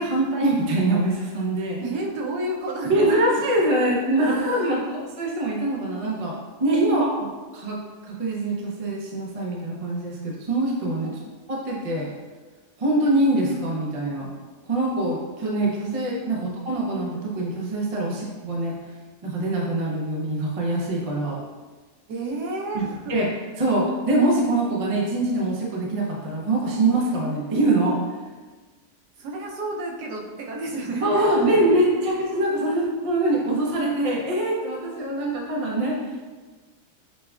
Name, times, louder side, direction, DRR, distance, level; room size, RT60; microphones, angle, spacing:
voice 1, 0.0-1.8 2.8-7.3 7.5-11.1 11.5-12.1 12.8-14.3 14.7-18.8 19.2-21.4 22.7-22.8 23.1-23.3 23.6-28.0 31.0-36.0, right 1 dB, 50° right, -3 dB, 0.4 m, -24 dB
voice 2, 1.8-3.4 3.7-3.8 4.1-4.9 6.8-7.3 11.0-11.4 16.3-16.5 22.1-23.2 29.2-31.6 31.9-32.1 32.6-32.9, right 2 dB, 85° right, -1 dB, 1.2 m, -31 dB
6.5 x 2.2 x 2.3 m, 1.3 s
omnidirectional pair, 1.7 m